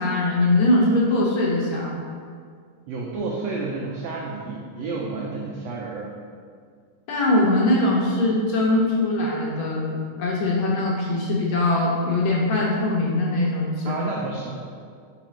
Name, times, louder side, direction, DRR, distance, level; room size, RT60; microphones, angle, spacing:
voice 1, 0.0-1.9 7.1-9.9 10.2-13.9, left 2 dB, 70° left, -3 dB, 1.8 m, -21 dB
voice 2, 2.9-6.1 13.8-14.7, right 3 dB, 85° right, -2 dB, 1.4 m, -30 dB
4.9 x 4.4 x 5.0 m, 2.1 s
omnidirectional pair, 3.7 m